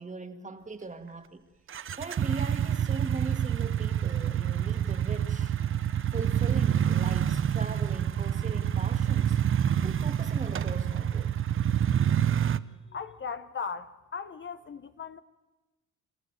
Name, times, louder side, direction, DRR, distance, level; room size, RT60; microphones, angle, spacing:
voice 1, 0.0-1.4 2.0-5.5 6.1-9.4 9.8-11.3, right 3 dB, 25° right, 1.9 m, -40 dB
sound 1, 1.7-12.6, right 9 dB, 45° right, 0.7 m, -27 dB
voice 2, 12.9-15.2, left 6 dB, 40° left, 1.0 m, -38 dB
27.0 x 14.0 x 9.5 m
cardioid pair, 90°, 30 cm